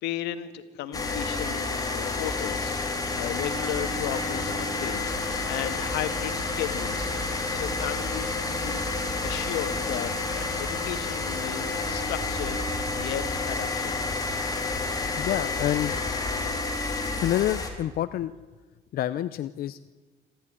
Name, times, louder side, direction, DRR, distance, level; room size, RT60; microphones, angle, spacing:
voice 1, 0.0-14.1, left 12 dB, 85° left, 11 dB, 1.7 m, -35 dB
sound 1, 0.9-17.7, left 3 dB, 20° left, 4.2 m, -29 dB
voice 2, 15.2-16.0 17.2-18.3 18.9-19.9, left 12 dB, 60° left, 12 dB, 0.7 m, -28 dB
26.5 x 14.0 x 10.0 m, 1.3 s
cardioid pair, 110°, 17 cm